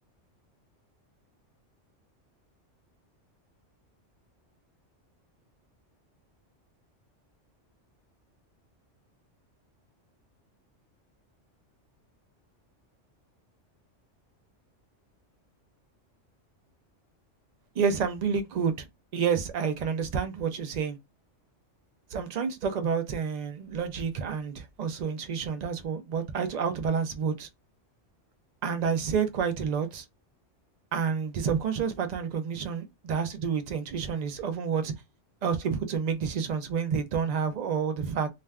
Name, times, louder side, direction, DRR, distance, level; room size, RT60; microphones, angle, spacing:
voice 1, 17.8-18.9 19.1-21.0 22.1-27.5 28.6-30.0 30.9-34.9 35.4-38.3, right 6 dB, 70° right, 0.4 m, -29 dB
2.4 x 2.2 x 3.4 m
omnidirectional pair, 1.3 m